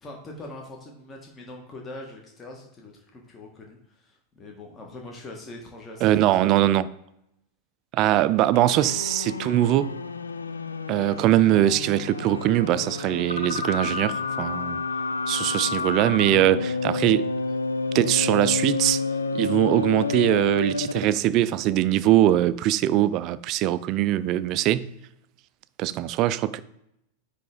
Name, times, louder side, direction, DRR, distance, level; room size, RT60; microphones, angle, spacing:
voice 1, 0.0-6.2, left 2 dB, 20° left, 1.4 m, -42 dB
voice 2, 6.0-6.9 7.9-9.9 10.9-14.8 15.3-17.3 17.9-19.0 19.3-24.9 25.8-26.6, right 13 dB, 40° right, 0.4 m, -22 dB
sound 1, 8.5-21.2, left 4 dB, 75° left, 0.4 m, -29 dB
9.5 x 3.3 x 3.9 m
figure-of-eight pair, 90°, 0 cm